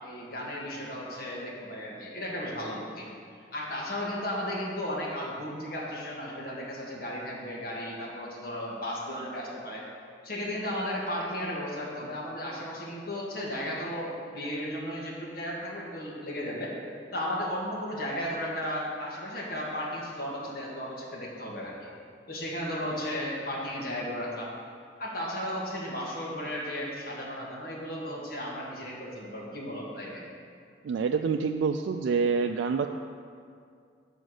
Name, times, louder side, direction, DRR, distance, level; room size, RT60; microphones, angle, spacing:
voice 1, 0.0-3.1 3.5-9.8 10.2-16.7 17.1-21.9 22.3-24.5 25.0-30.2, equal, 55° left, -4 dB, 1.8 m, -35 dB
voice 2, 30.8-32.9, right 5 dB, 85° right, 5 dB, 0.3 m, -27 dB
8.0 x 5.0 x 6.3 m, 2.3 s
head